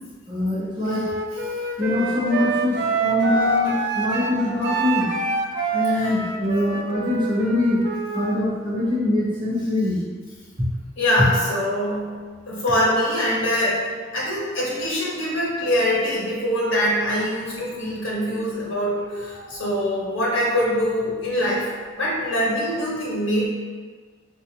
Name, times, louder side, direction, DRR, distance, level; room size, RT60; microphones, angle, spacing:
voice 1, 0.3-1.0 1.8-5.1 5.7-7.8 8.1-10.0, left 2 dB, 25° right, -7 dB, 0.7 m, -23 dB
Wind instrument woodwind instrument, 0.9-8.4, right 3 dB, 55° right, 0.3 m, -26 dB
voice 2, 11.0-12.1 12.5-13.8 14.1-21.7 22.0-23.5, equal, 70° left, -6 dB, 0.8 m, -23 dB
3.7 x 2.3 x 2.9 m, 1.5 s
head